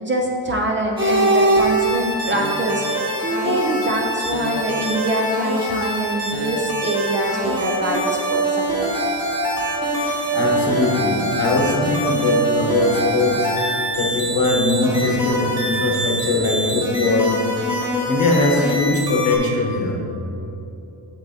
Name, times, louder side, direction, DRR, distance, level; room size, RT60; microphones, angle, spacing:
voice 1, 0.0-8.0 8.3-9.1, right 1 dB, 30° right, 0 dB, 0.4 m, -24 dB
sound 1, 1.0-19.4, right 1 dB, 10° right, 1.5 m, -23 dB
voice 2, 9.9-20.2, left 2 dB, 55° left, 1 dB, 1.0 m, -21 dB
8.0 x 7.3 x 2.7 m, 2.9 s
cardioid pair, 175°, 43 cm